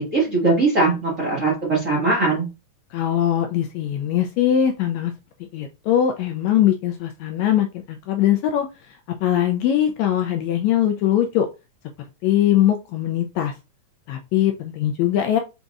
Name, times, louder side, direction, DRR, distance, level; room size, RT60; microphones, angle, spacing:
voice 1, 0.0-2.5, right 3 dB, 40° right, -5 dB, 1.1 m, -20 dB
voice 2, 2.9-5.1 5.5-11.5 12.2-13.5 14.1-15.4, left 11 dB, 80° left, 5 dB, 1.6 m, -21 dB
5.0 x 3.9 x 2.3 m, 0.26 s
omnidirectional pair, 3.5 m